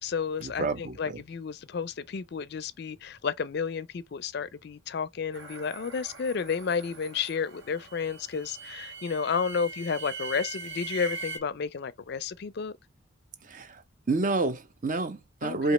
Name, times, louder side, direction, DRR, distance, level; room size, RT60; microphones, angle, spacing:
voice 1, 0.0-12.7 15.4-15.7, left 6 dB, 55° left, 0.4 m, -32 dB
voice 2, 0.6-0.9 13.5-13.7 14.1-15.7, right 3 dB, 40° right, 0.6 m, -28 dB
sound 1, 5.3-11.4, right 4 dB, 65° right, 1.2 m, -41 dB
5.1 x 2.8 x 3.0 m
head